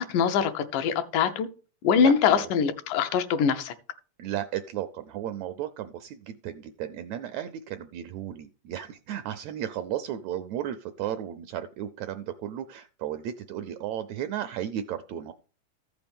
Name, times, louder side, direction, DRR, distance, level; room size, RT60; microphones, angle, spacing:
voice 1, 0.0-1.5 1.8-3.7, left 7 dB, 80° left, 2.4 m, -23 dB
voice 2, 2.0-2.5 4.2-15.3, right 11 dB, 80° right, 1.6 m, -34 dB
14.5 x 6.0 x 3.5 m
omnidirectional pair, 3.7 m